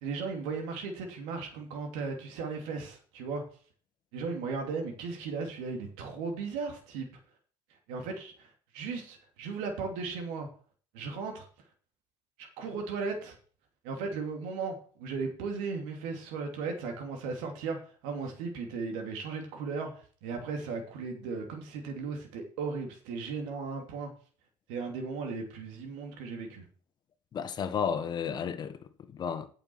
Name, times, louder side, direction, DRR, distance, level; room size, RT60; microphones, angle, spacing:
voice 1, 0.0-3.4 4.1-7.1 7.9-10.5 10.9-11.5 12.4-13.3 13.8-24.1 24.7-26.6, right 4 dB, 85° right, 2.7 m, -36 dB
voice 2, 27.3-29.5, left 7 dB, 35° left, 1.5 m, -33 dB
9.0 x 6.9 x 6.2 m
cardioid pair, 125°, 12 cm